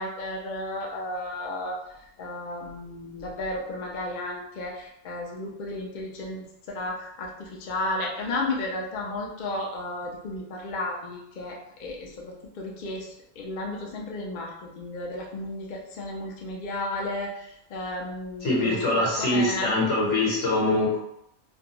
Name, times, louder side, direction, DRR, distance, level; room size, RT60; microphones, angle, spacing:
voice 1, 0.0-1.8 2.2-13.1 13.4-19.9, left 2 dB, 55° left, -2 dB, 0.6 m, -33 dB
voice 2, 18.4-21.0, left 2 dB, 90° left, -5 dB, 1.3 m, -23 dB
2.4 x 2.3 x 2.8 m, 0.77 s
omnidirectional pair, 1.2 m